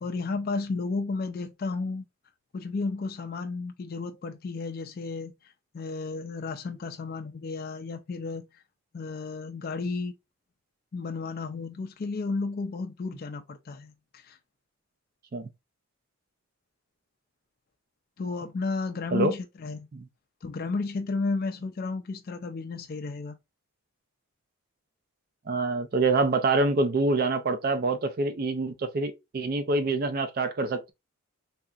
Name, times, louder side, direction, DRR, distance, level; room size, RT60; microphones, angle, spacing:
voice 1, 0.0-2.0 2.5-5.3 5.7-8.5 8.9-10.1 10.9-14.4 18.2-19.8 20.4-23.4, left 3 dB, 40° left, 0.3 m, -33 dB
voice 2, 25.5-30.9, right 3 dB, 40° right, 0.4 m, -26 dB
3.4 x 2.8 x 2.3 m
head